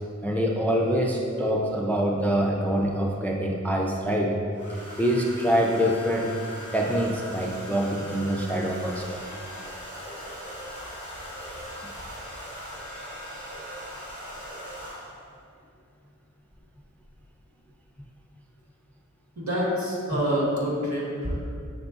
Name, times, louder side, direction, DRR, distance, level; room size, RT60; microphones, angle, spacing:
voice 1, 0.2-4.4 5.0-6.3 6.7-9.1, equal, 5° left, -1 dB, 0.3 m, -25 dB
Domestic sounds home sounds, 2.4-3.1 4.5-15.3 16.5-16.8 17.0-17.4, equal, 80° right, 1.2 m, -41 dB
sound 1, 8.9-15.0, equal, 35° right, 1.0 m, -43 dB
voice 2, 19.4-21.4, equal, 65° right, -6 dB, 1.3 m, -27 dB
5.9 x 3.6 x 2.5 m, 2.4 s
wide cardioid pair, 50°, 30 cm